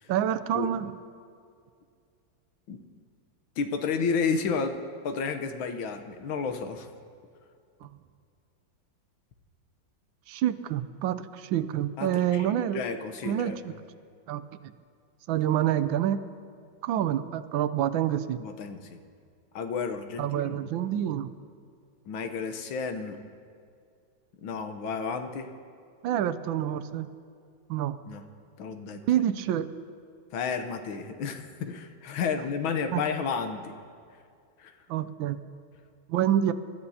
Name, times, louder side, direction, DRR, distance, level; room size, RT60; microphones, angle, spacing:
voice 1, 0.1-0.9 7.8-7.9 10.3-12.8 13.2-13.7 14.3-14.7 15.3-16.2 16.8-18.4 20.2-21.3 26.0-27.1 27.7-28.0 29.1-29.7 32.9-33.0 34.9-35.4 36.1-36.5, right 11 dB, 80° right, 13 dB, 1.3 m, -27 dB
voice 2, 3.6-6.9 12.0-13.8 18.4-18.8 19.6-20.6 22.1-23.2 24.4-25.5 28.1-28.2 28.6-29.0 30.3-33.7 34.6-34.7, left 5 dB, 85° left, 7 dB, 1.7 m, -32 dB
27.0 x 13.0 x 2.8 m, 2.3 s
omnidirectional pair, 2.2 m